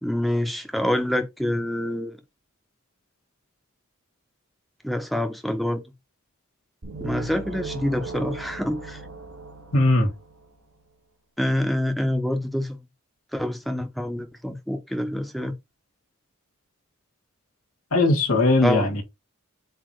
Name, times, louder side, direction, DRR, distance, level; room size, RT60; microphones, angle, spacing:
voice 1, 0.0-2.2 4.8-5.8 7.0-9.0 11.4-12.8 13.3-15.5 18.6-18.9, left 1 dB, ahead, 0.7 m, -26 dB
sound 1, 6.8-10.6, right 3 dB, 90° right, 1.8 m, -38 dB
voice 2, 9.7-10.1 17.9-19.0, left 2 dB, 85° left, 1.9 m, -19 dB
7.7 x 2.9 x 4.7 m
head